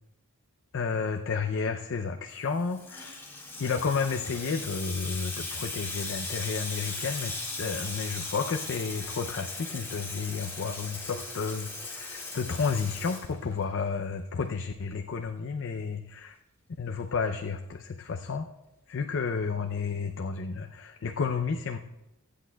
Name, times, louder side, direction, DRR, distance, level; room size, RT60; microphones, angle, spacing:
voice 1, 0.7-3.2 3.6-7.3 7.6-16.4 16.8-18.5 18.9-21.8, left 5 dB, 60° left, 5 dB, 0.5 m, -31 dB
Water tap faucet / Sink (filling or washing), 2.4-13.8, left 3 dB, 10° left, 1.8 m, -38 dB
22.5 x 8.4 x 2.3 m, 0.94 s
head